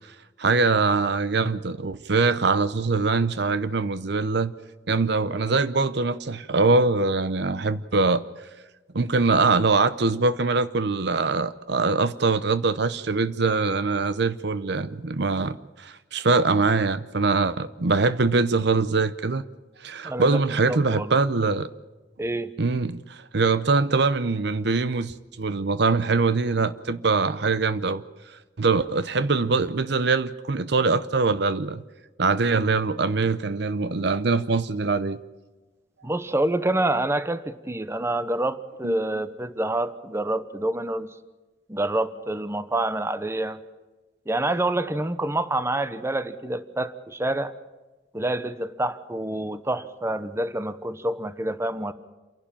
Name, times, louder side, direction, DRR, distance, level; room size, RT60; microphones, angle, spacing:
voice 1, 0.4-4.5 4.9-8.3 8.9-19.4 19.8-21.7 22.6-28.0 28.6-31.8 32.2-35.2 38.8-39.0, right 3 dB, 65° right, 14 dB, 0.8 m, -23 dB
voice 2, 20.0-20.4 20.7-21.1 22.2-22.5 36.0-41.1 41.7-43.6 44.3-47.5 48.1-51.9, right 1 dB, 15° right, 13 dB, 0.9 m, -27 dB
28.0 x 11.5 x 8.9 m, 1.2 s
head